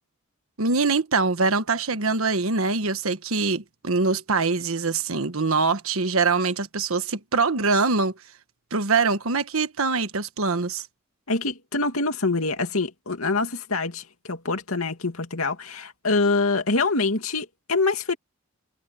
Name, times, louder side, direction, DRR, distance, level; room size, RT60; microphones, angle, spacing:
voice 1, 0.6-8.1 8.7-10.8, right 4 dB, 80° right, 1.3 m, -23 dB
voice 2, 11.3-18.2, left 3 dB, 90° left, 2.5 m, -25 dB
head